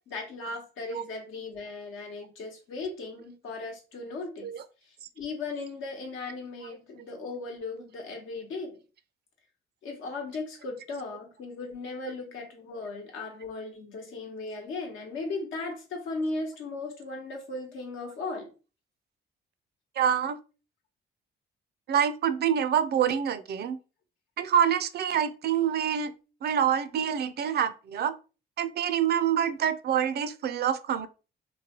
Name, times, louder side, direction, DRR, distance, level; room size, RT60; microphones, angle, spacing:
voice 1, 0.1-4.5 4.9-8.8 9.8-18.5, left 3 dB, 85° left, 1.0 m, -37 dB
voice 2, 20.0-20.4 21.9-23.8 24.4-26.1 26.4-28.1 28.6-31.1, right 9 dB, 55° right, 0.4 m, -26 dB
3.1 x 2.2 x 2.8 m
cardioid pair, 90°, 20 cm